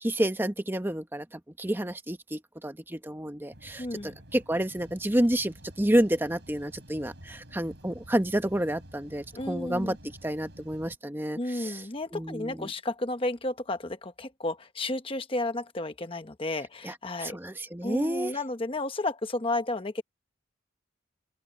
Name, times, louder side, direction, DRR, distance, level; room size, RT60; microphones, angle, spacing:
voice 1, 0.0-9.9 10.2-11.8 12.1-12.7 16.8-16.9 17.2-18.4, right 1 dB, 10° right, 1.1 m, -29 dB
sound 1, 3.5-11.0, equal, 60° right, 6.3 m, -50 dB
voice 2, 3.8-4.1 9.3-10.0 11.4-17.4 17.8-20.0, left 2 dB, 30° left, 1.0 m, -32 dB
open air
head